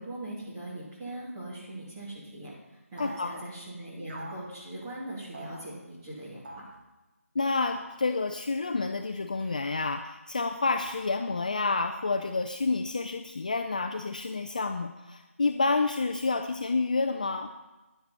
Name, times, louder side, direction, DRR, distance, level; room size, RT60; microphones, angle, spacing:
voice 1, 0.0-2.5 2.9-6.6, right 1 dB, 15° right, -8 dB, 2.6 m, -40 dB
voice 2, 3.0-3.4 7.4-17.5, left 3 dB, 30° left, 6 dB, 0.4 m, -29 dB
sound 1, 3.0-3.3 4.1-4.5 5.3-5.6 6.4-6.8 7.7-8.0 9.4-9.9 10.8-11.5, right 2 dB, 40° right, 2.1 m, -45 dB
10.5 x 10.0 x 4.2 m, 1.1 s
figure-of-eight pair, 175°, 8 cm